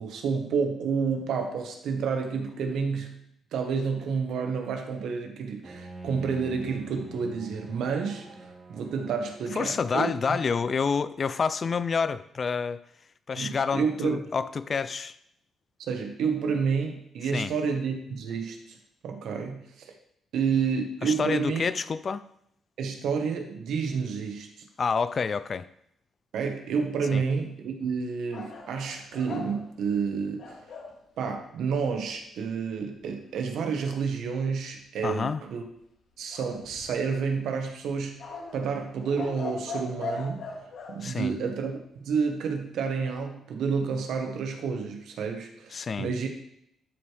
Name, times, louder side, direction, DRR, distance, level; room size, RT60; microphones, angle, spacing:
voice 1, 0.0-3.1 3.5-10.1 13.4-14.2 15.8-18.6 19.0-19.9 20.3-21.6 22.8-24.5 26.3-30.5 31.2-35.6 36.2-38.2 38.5-40.4 40.9-46.3, right 5 dB, 75° right, 4 dB, 1.3 m, -29 dB
Bowed string instrument, 5.6-10.4, right 2 dB, 25° right, 1.4 m, -47 dB
voice 2, 9.5-12.8 13.3-15.2 17.3-17.5 21.0-22.2 24.8-25.7 27.1-27.2 35.0-35.4 41.0-41.3 45.7-46.1, left 5 dB, 40° left, 15 dB, 0.3 m, -28 dB
sound 1, 28.3-30.9 36.3-37.2 38.2-41.0, left 3 dB, 65° left, 1.8 m, -39 dB
12.5 x 4.7 x 3.4 m, 0.73 s
cardioid pair, 90°, 0 cm